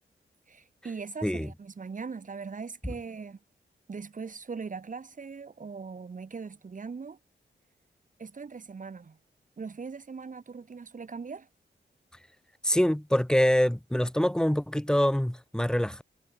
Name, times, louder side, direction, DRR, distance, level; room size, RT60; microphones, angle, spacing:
voice 1, 0.5-3.4 3.9-7.2 8.2-9.2 9.6-11.5, right 5 dB, 40° right, 6.3 m, -40 dB
voice 2, 12.6-16.0, equal, 5° left, 3.7 m, -25 dB
wide cardioid pair, 175°, 19 cm